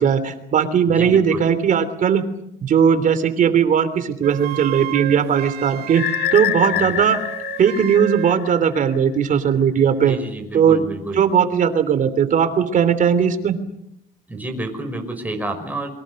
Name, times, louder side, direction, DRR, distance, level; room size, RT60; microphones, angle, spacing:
voice 1, 0.0-2.2 2.6-6.0 6.3-7.2 7.6-10.2 10.5-10.8 11.1-13.6, right 7 dB, 50° right, 12 dB, 3.2 m, -18 dB
voice 2, 0.9-1.4 6.8-7.1 10.1-11.3 14.3-15.9, right 2 dB, 10° right, 4 dB, 5.6 m, -30 dB
Wind instrument woodwind instrument, 4.2-8.4, right 13 dB, 75° right, 1.6 m, -32 dB
sound 1, 5.9-8.8, left 15 dB, 75° left, 1.0 m, -26 dB
29.5 x 24.0 x 6.5 m, 0.79 s
cardioid pair, 110°, 17 cm